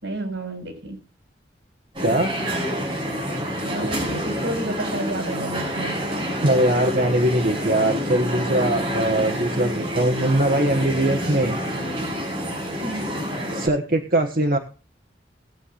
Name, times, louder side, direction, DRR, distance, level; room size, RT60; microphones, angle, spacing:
voice 1, 0.0-1.0 3.6-5.9 12.8-13.2, right 1 dB, 80° right, 6 dB, 5.4 m, -31 dB
sound 1, 1.9-13.7, equal, 25° right, 5.8 m, -28 dB
voice 2, 6.4-11.6 13.5-14.6, right 1 dB, 50° right, 4 dB, 1.3 m, -21 dB
20.0 x 8.5 x 2.5 m, 0.35 s
head